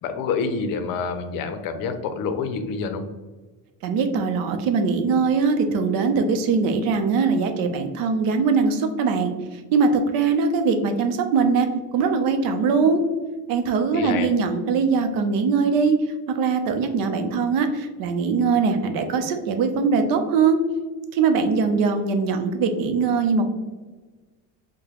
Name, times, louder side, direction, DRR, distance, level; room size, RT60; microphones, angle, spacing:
voice 1, 0.0-3.1 13.9-14.3, left 5 dB, 65° left, 8 dB, 0.6 m, -27 dB
voice 2, 3.8-13.0 13.5-16.0 16.3-20.6 21.1-23.5, right 5 dB, 65° right, 7 dB, 0.6 m, -21 dB
4.7 x 2.2 x 2.9 m, 1.3 s
cardioid pair, 125°, 37 cm